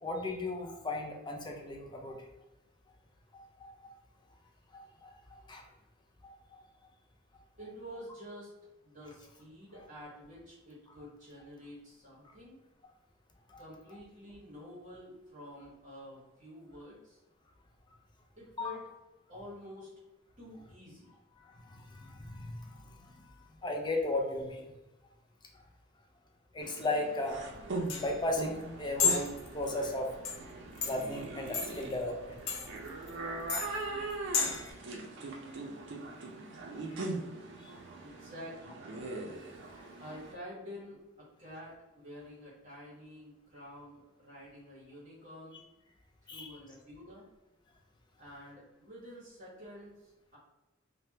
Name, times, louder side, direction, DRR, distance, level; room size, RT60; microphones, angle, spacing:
voice 1, 0.0-2.3 3.3-3.7 4.7-5.1 5.5-5.6 6.5-6.6 13.5-13.6 18.6-18.8 21.4-23.3 23.6-24.7 26.5-27.4 28.0-30.1 30.8-32.4 36.9-37.0 37.6-37.7 46.3-46.5, left 2 dB, 20° left, 2 dB, 0.4 m, -36 dB
voice 2, 7.6-8.5 8.8-12.6 13.6-17.2 18.4-18.8 19.3-19.9 20.4-21.1 38.0-38.9 40.0-41.0 41.4-45.6 46.2-47.3 48.2-50.4, equal, 40° right, -7 dB, 1.1 m, -49 dB
sound 1, 26.6-40.3, right 2 dB, 65° right, 0.5 m, -41 dB
sound 2, 27.3-34.7, left 5 dB, 90° left, 0.5 m, -35 dB
3.4 x 2.1 x 2.7 m, 1.0 s
head